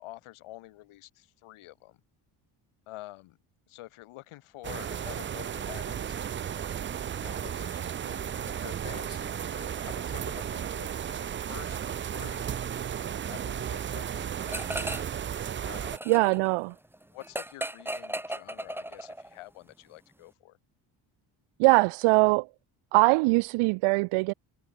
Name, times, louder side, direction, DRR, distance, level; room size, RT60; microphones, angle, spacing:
voice 1, 0.0-2.0 2.9-3.4 3.7-6.5 7.1-12.6 13.3-14.9 15.6-16.2 17.1-20.6, left 17 dB, 80° left, 7.8 m, -48 dB
sound 1, 4.6-16.0, right 9 dB, 25° right, 0.4 m, -34 dB
sound 2, 14.5-15.2 15.5-19.3, right 1 dB, 5° right, 1.6 m, -36 dB
voice 2, 16.1-16.7 21.6-22.5 22.9-24.3, right 27 dB, 85° right, 0.6 m, -22 dB
supercardioid pair, 70°, 49 cm